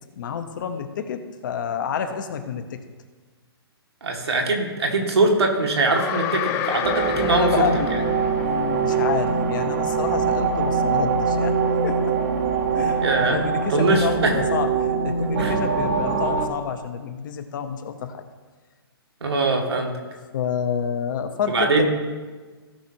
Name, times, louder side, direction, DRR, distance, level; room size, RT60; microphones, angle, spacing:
voice 1, 0.2-2.8 7.1-8.0 8.4-11.5 11.8-12.2 12.7-13.0 13.3-18.2 20.3-21.9, left 7 dB, 50° left, 7 dB, 1.1 m, -28 dB
voice 2, 4.0-7.7 13.0-13.4 13.7-14.4 15.4-15.5 19.2-19.9 21.5-21.9, right 3 dB, 90° right, 1 dB, 2.3 m, -22 dB
sound 1, 5.9-9.0, left 10 dB, 20° left, 0.4 m, -30 dB
sound 2, 6.8-16.5, right 5 dB, 45° right, 1.3 m, -23 dB
17.0 x 6.2 x 3.0 m, 1.4 s
hypercardioid pair, 150°, 13 cm